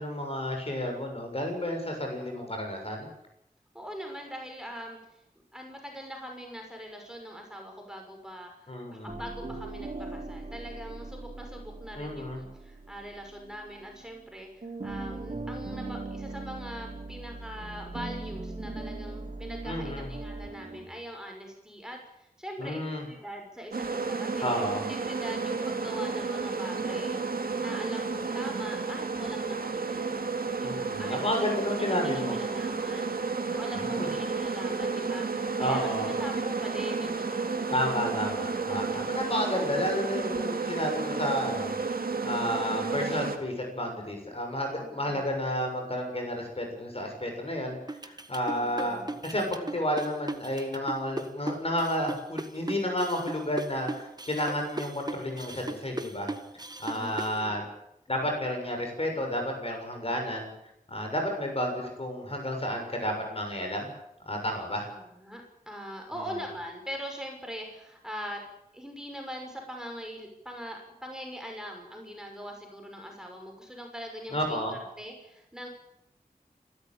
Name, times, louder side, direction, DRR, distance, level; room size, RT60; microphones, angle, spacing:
voice 1, 0.0-3.1 8.7-9.2 12.0-12.4 19.6-20.1 22.6-23.0 24.4-24.8 30.6-32.3 34.0-34.1 35.6-36.1 37.7-41.8 42.2-56.3 56.8-57.6 58.1-60.5 60.9-63.9 64.3-64.9 74.3-74.8, equal, 40° left, 3 dB, 7.0 m, -31 dB
voice 2, 3.7-5.2 5.5-30.3 30.6-37.8 44.8-45.3 48.5-49.1 56.9-57.6 64.9-68.4 68.7-75.7, equal, 5° right, 2 dB, 6.2 m, -42 dB
sound 1, 9.1-14.3 14.6-20.9, right 2 dB, 50° right, 4.5 m, -40 dB
sound 2, 23.7-43.4, right 4 dB, 85° right, 2.1 m, -32 dB
sound 3, 47.9-57.4, right 2 dB, 25° right, 1.6 m, -36 dB
28.5 x 13.5 x 9.1 m, 0.82 s
wide cardioid pair, 70°, 15 cm